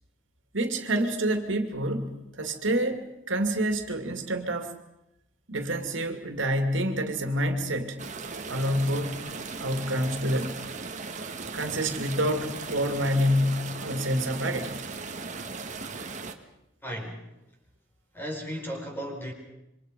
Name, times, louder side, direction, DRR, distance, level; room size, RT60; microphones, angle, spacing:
voice 1, 0.5-4.7 5.5-8.0 8.3-9.2 9.6-10.6 11.5-14.8, equal, 75° right, 6 dB, 2.6 m, -28 dB
sound 1, 8.0-16.3, right 4 dB, 40° right, 1.7 m, -37 dB
voice 2, 16.8-17.3 18.1-19.3, equal, 10° left, 1 dB, 4.9 m, -35 dB
27.0 x 25.0 x 5.3 m, 0.88 s
head